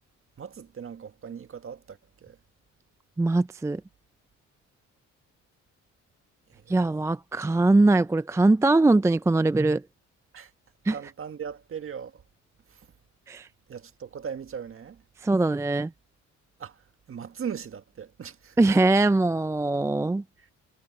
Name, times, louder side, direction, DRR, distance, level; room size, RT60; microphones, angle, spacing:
voice 1, 0.4-2.4 6.5-6.9 10.3-10.5 10.9-12.2 12.7-12.9 13.7-15.0 16.6-16.8 17.1-18.6 20.4-20.5, right 7 dB, 45° right, 1.8 m, -39 dB
voice 2, 3.2-3.8 6.7-9.8 10.9-11.0 13.3-13.5 15.2-15.9 18.6-20.2, right 2 dB, 10° right, 0.4 m, -22 dB
cardioid pair, 90°, 30 cm